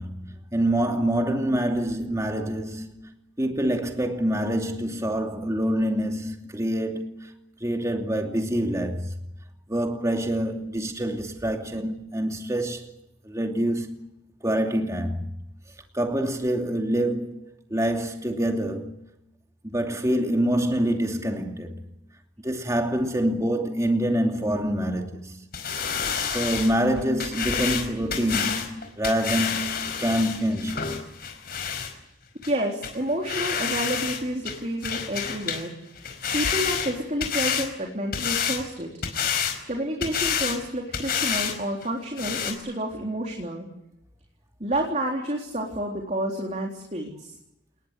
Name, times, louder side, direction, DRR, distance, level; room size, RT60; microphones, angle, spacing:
voice 1, 0.0-3.1 3.4-7.3 7.6-9.1 9.7-12.9 13.2-14.0 14.4-15.3 15.9-19.0 19.6-21.9 22.4-25.5 26.1-31.0, right 1 dB, 15° right, 2.7 m, -26 dB
sound 1, 25.5-31.9 32.4-32.5 32.8-33.0 33.3-34.2 34.5-35.7 36.0-37.7 38.1-38.6 39.0-39.6 40.0-40.6 40.9-41.6 41.8-41.9 42.2-42.5, left 7 dB, 55° left, 5.0 m, -28 dB
voice 2, 32.4-35.7 36.3-38.9 39.7-43.7 44.6-47.4, right 1 dB, 35° right, 3.9 m, -29 dB
28.5 x 20.5 x 8.4 m
head